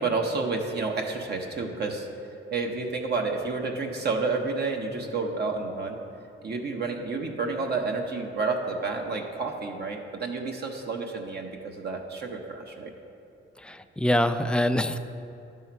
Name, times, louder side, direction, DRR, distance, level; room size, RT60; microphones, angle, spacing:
voice 1, 0.0-2.1 2.5-6.0 6.4-12.9, right 3 dB, 50° right, 2 dB, 0.9 m, -30 dB
voice 2, 13.6-15.0, left 1 dB, 5° left, 9 dB, 0.3 m, -25 dB
11.0 x 5.5 x 4.5 m, 2.7 s
cardioid pair, 100°, 21 cm